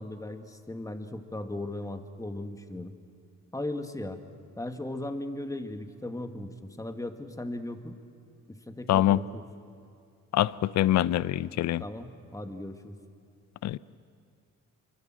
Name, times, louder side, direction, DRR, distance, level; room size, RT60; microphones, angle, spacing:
voice 1, 0.0-2.9 3.5-4.2 4.6-8.0 8.5-9.4 11.8-13.0, left 1 dB, 10° left, 7 dB, 2.0 m, -37 dB
voice 2, 8.9-9.2 10.3-11.8 13.6-13.8, left 13 dB, 65° left, 19 dB, 0.6 m, -24 dB
26.0 x 23.5 x 7.6 m, 2.4 s
cardioid pair, 90°, 30 cm